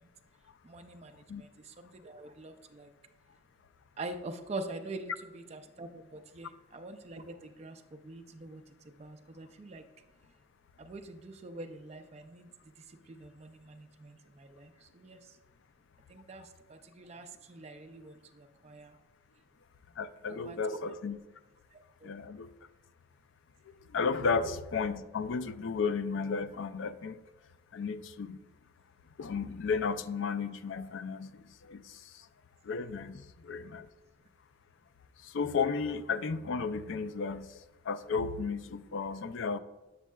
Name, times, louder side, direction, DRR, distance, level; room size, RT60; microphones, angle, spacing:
voice 1, 0.6-2.9 4.0-9.9 10.8-12.5 12.8-15.2 16.1-18.9 20.3-20.6 21.7-22.2, right 2 dB, 30° right, 7 dB, 0.4 m, -45 dB
voice 2, 20.0-21.2 22.0-22.5 23.9-27.2 27.7-28.4 29.2-32.1 32.6-33.9 35.2-37.6 37.9-39.6, left 5 dB, 60° left, 11 dB, 0.3 m, -33 dB
7.2 x 7.2 x 2.2 m, 1.2 s
head